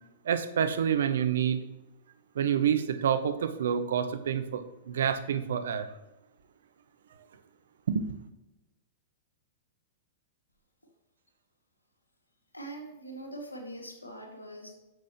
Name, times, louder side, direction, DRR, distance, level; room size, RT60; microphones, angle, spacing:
voice 1, 0.3-1.6 2.4-5.9 7.9-8.1, right 8 dB, 65° right, 10 dB, 0.8 m, -28 dB
voice 2, 12.5-14.7, right 1 dB, 90° left, 1 dB, 2.0 m, -42 dB
9.0 x 7.6 x 3.0 m, 0.98 s
figure-of-eight pair, 100°, 0 cm